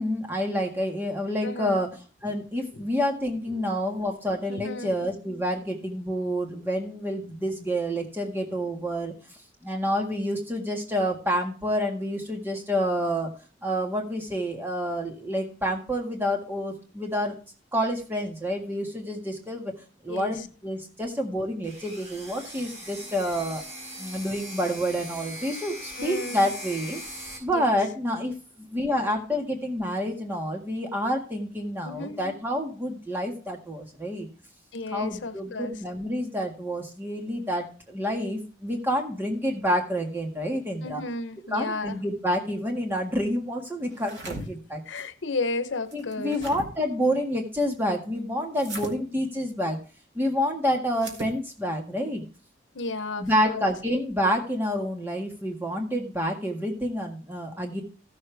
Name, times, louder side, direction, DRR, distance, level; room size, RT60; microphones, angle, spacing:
voice 1, 0.0-1.9 2.2-9.1 9.6-13.3 13.6-17.3 17.7-19.7 20.0-23.6 24.0-27.0 27.4-34.3 34.9-41.0 41.5-44.8 45.9-49.8 50.2-52.2 53.2-57.8, equal, 10° right, 1.7 m, -28 dB
voice 2, 1.4-1.8 3.6-3.7 4.5-4.9 20.1-20.5 26.0-26.4 27.5-27.8 31.8-32.2 34.7-35.7 40.8-42.0 44.9-46.4 52.7-53.7, left 3 dB, 90° left, 0.9 m, -33 dB
sound 1, 21.6-27.4, equal, 35° right, 4.7 m, -40 dB
sound 2, 43.9-44.4 45.9-46.7 48.6-48.9 50.9-51.4, right 2 dB, 75° right, 2.2 m, -37 dB
15.0 x 6.7 x 3.4 m
head